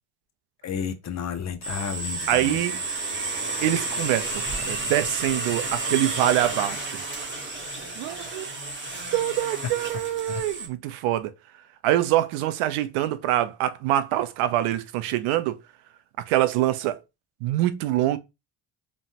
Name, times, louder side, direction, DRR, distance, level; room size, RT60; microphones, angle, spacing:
voice 1, 0.6-2.6 2.9-3.0 10.3-10.4, left 7 dB, 35° left, 0.5 m, -32 dB
Hexacopter drone flight, 1.6-10.7, right 3 dB, 25° right, 0.9 m, -31 dB
voice 2, 2.3-2.8 3.6-7.0 8.0-8.5 9.1-11.3 11.8-15.6 16.3-17.0 17.4-18.2, right 13 dB, 85° right, 0.6 m, -25 dB
3.1 x 2.1 x 2.7 m
cardioid pair, 90°, 49 cm